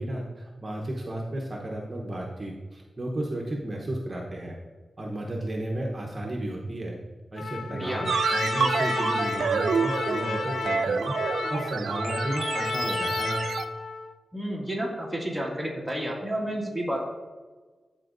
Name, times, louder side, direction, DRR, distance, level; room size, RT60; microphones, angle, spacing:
voice 1, 0.0-4.6 5.0-7.0 7.3-11.1 11.5-13.5, right 1 dB, 35° right, 0 dB, 0.8 m, -33 dB
Trumpet, 7.4-14.2, left 4 dB, 85° left, 0.4 m, -32 dB
voice 2, 7.7-8.1 14.3-17.1, right 1 dB, 5° left, -2 dB, 1.8 m, -31 dB
sound 1, 8.1-13.7, right 5 dB, 85° right, 0.3 m, -28 dB
12.5 x 4.4 x 2.5 m, 1.4 s
wide cardioid pair, 95°, 0 cm